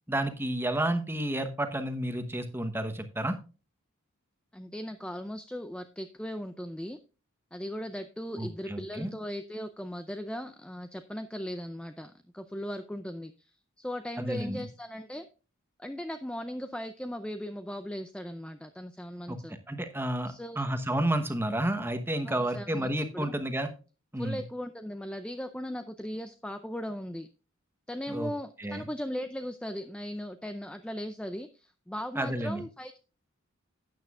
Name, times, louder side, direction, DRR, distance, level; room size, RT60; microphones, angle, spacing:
voice 1, 0.1-3.4 8.3-9.1 14.2-14.7 19.3-19.4 19.7-23.7 24.1-24.4 28.1-28.3 28.6-28.9 32.1-32.6, right 1 dB, 10° right, 8 dB, 1.0 m, -31 dB
voice 2, 4.5-7.0 7.5-15.3 15.8-19.6 20.3-20.6 22.2-23.4 24.2-27.3 27.9-33.0, equal, 5° left, 9 dB, 0.4 m, -38 dB
12.5 x 9.1 x 2.4 m, 0.34 s
head